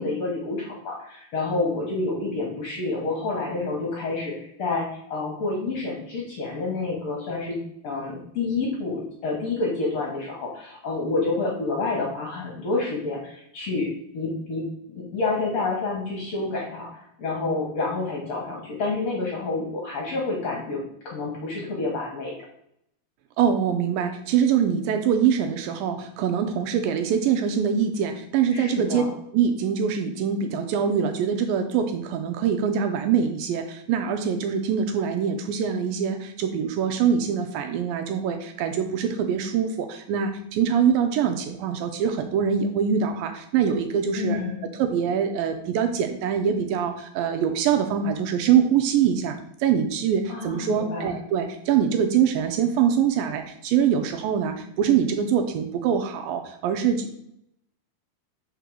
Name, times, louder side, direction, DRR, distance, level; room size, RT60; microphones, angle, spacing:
voice 1, 0.0-7.6 7.8-16.9 17.2-22.3 28.5-29.1 44.2-44.7 50.3-51.2, left 3 dB, 60° left, -2 dB, 1.8 m, -28 dB
voice 2, 23.4-29.1 29.3-44.4 44.8-57.1, right 7 dB, 80° right, 6 dB, 2.2 m, -24 dB
5.2 x 4.6 x 6.2 m, 0.74 s
omnidirectional pair, 4.5 m